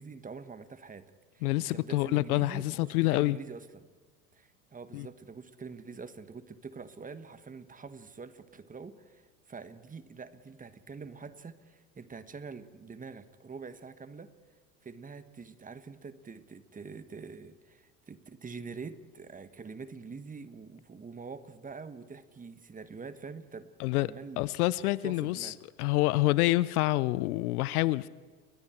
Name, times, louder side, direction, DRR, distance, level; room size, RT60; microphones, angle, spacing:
voice 1, 0.0-1.5 1.7-3.9 4.3-14.3 14.8-24.5 25.0-25.6, right 5 dB, 15° right, 1.4 m, -45 dB
voice 2, 1.4-3.4 4.9-5.1 23.8-24.1 24.4-25.5 25.8-28.1, left 19 dB, 65° left, 0.8 m, -27 dB
29.5 x 23.0 x 4.5 m
hypercardioid pair, 95°, 47 cm